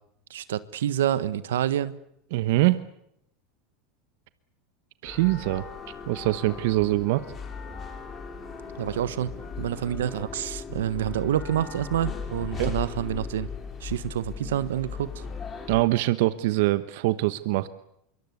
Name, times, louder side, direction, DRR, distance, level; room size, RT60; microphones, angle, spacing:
voice 1, 0.3-1.9 8.8-9.3 9.6-13.5 13.8-15.2, right 11 dB, 85° right, 14 dB, 1.4 m, -28 dB
voice 2, 2.3-2.8 5.0-5.6 6.1-7.2 12.6-12.7 15.7-17.7, right 18 dB, 70° right, 13 dB, 1.1 m, -23 dB
sound 1, 5.0-15.8, left 5 dB, 30° left, 6.4 m, -37 dB
25.5 x 23.5 x 8.3 m, 0.75 s
hypercardioid pair, 100°, 0 cm